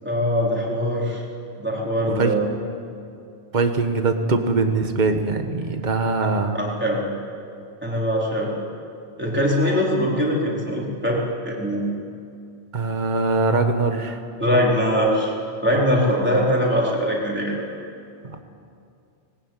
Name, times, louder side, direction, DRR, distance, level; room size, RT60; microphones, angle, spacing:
voice 1, 0.0-1.2 1.6-2.5 6.6-7.0 7.8-8.5 9.2-11.8 14.4-15.3 15.6-17.6, equal, 10° right, -4 dB, 4.2 m, -22 dB
voice 2, 3.5-6.6 12.7-14.2 18.2-18.4, right 3 dB, 40° right, 6 dB, 1.5 m, -22 dB
20.0 x 19.0 x 9.1 m, 2.4 s
omnidirectional pair, 1.2 m